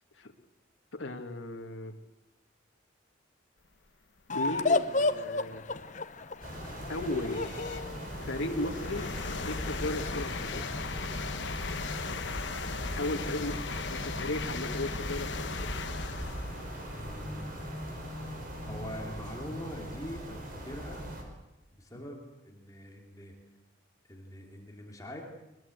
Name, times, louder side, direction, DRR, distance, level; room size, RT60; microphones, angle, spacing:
voice 1, 0.9-2.0 4.3-5.6 6.9-7.5 8.2-9.1 9.4-10.6 13.0-13.5 13.9-15.7, left 1 dB, 85° left, 5 dB, 1.9 m, -35 dB
sound 1, 4.3-10.7, left 3 dB, 40° left, 0.9 m, -33 dB
sound 2, 4.9-5.0 5.6-20.4, left 4 dB, 65° left, 1.0 m, -39 dB
sound 3, 6.4-21.2, equal, 45° right, 5.0 m, -40 dB
voice 2, 12.9-13.5 16.9-17.6 18.7-21.1 21.8-23.3 24.1-25.2, equal, 20° left, 0 dB, 3.2 m, -43 dB
22.0 x 21.5 x 8.0 m, 0.96 s
head